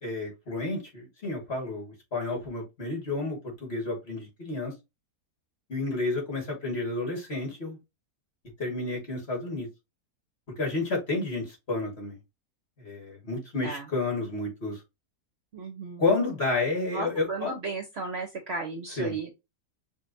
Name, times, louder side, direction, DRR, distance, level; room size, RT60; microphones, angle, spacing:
voice 1, 0.0-4.7 5.7-7.8 8.6-9.7 10.6-12.2 12.8-14.8 16.0-17.5 19.0-19.2, left 3 dB, 45° left, 2.0 m, -30 dB
voice 2, 15.5-16.2 16.8-19.3, right 3 dB, 55° right, 0.9 m, -35 dB
6.1 x 2.5 x 2.6 m
omnidirectional pair, 1.6 m